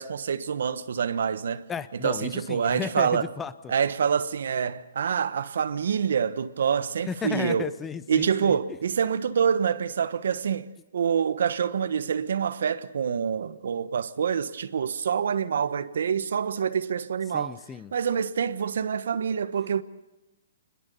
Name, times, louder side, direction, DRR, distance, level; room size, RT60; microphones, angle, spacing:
voice 1, 0.0-1.6 2.0-3.3 3.7-7.7 8.1-10.7 10.9-17.6 17.9-19.8, right 7 dB, 70° right, 1.1 m, -26 dB
voice 2, 1.7-3.7 7.1-8.8 17.3-17.9, left 6 dB, 15° left, 0.8 m, -34 dB
25.0 x 21.0 x 6.9 m
hypercardioid pair, 145°, 0 cm